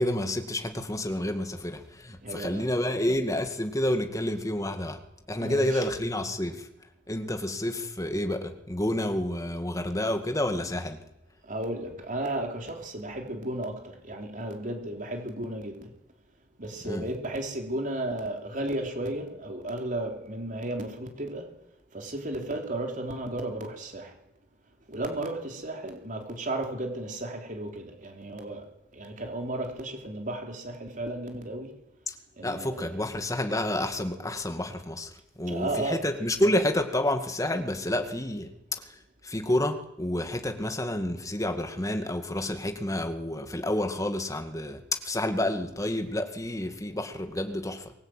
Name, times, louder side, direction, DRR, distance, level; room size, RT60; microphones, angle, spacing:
voice 1, 0.0-5.0 5.3-6.7 7.1-11.0 16.8-17.1 32.1-32.2 32.4-39.0 39.2-47.9, left 1 dB, 20° left, 2.2 m, -29 dB
voice 2, 2.2-2.7 5.3-5.8 11.4-15.9 16.6-21.5 21.9-24.1 24.9-28.6 28.9-31.7 32.4-32.9 35.5-36.0, right 1 dB, 45° right, 3.8 m, -34 dB
23.0 x 19.5 x 9.2 m
head